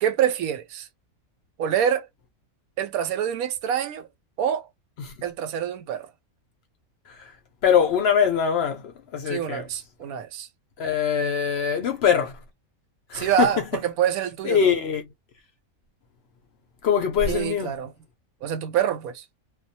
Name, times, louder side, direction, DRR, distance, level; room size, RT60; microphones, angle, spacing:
voice 1, 0.0-0.9 1.6-2.1 2.8-4.1 4.4-4.7 5.2-6.1 9.3-10.5 13.1-14.7 17.3-17.9 18.4-19.2, right 9 dB, 85° right, 1.0 m, -26 dB
voice 2, 7.6-9.7 10.8-12.3 13.1-13.8 14.4-15.0 16.8-17.8, left 7 dB, 60° left, 0.7 m, -23 dB
2.3 x 2.2 x 2.7 m
omnidirectional pair, 1.5 m